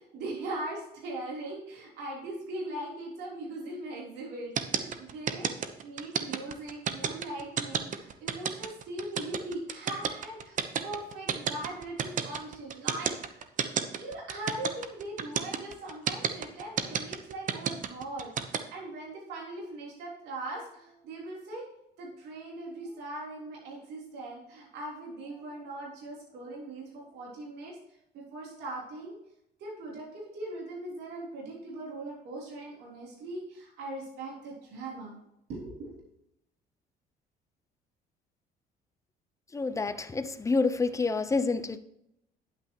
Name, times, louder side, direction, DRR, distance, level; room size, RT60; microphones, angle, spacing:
voice 1, 0.0-13.4 14.0-21.7 22.0-27.8 28.1-29.2 29.6-35.2 35.5-36.0, right 2 dB, 80° right, 3.6 m, -40 dB
sound 1, 4.6-18.6, right 8 dB, 50° right, 1.0 m, -30 dB
voice 2, 39.5-41.8, left 3 dB, 20° left, 0.8 m, -28 dB
10.5 x 9.1 x 3.0 m
cardioid pair, 110°, 17 cm